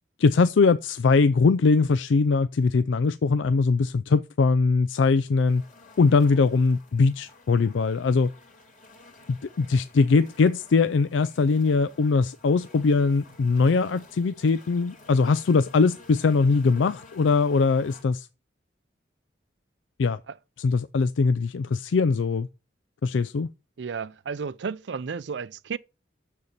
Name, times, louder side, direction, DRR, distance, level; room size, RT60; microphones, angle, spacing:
voice 1, 0.2-5.6 6.0-8.3 9.3-18.3 20.0-20.2 20.6-22.5 23.0-23.5, left 4 dB, 85° left, 0.4 m, -21 dB
sound 1, 5.5-18.0, left 2 dB, 45° left, 2.5 m, -52 dB
voice 2, 23.8-25.8, right 5 dB, 70° right, 0.4 m, -33 dB
6.8 x 6.7 x 7.3 m
head